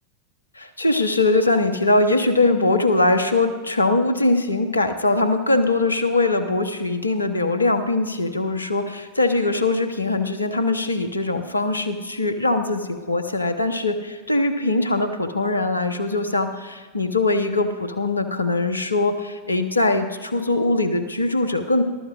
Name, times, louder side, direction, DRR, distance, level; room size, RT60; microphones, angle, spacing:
voice 1, 0.6-21.8, left 2 dB, 80° left, 9 dB, 0.9 m, -21 dB
22.0 x 12.5 x 2.4 m, 1.4 s
figure-of-eight pair, 90°, 0 cm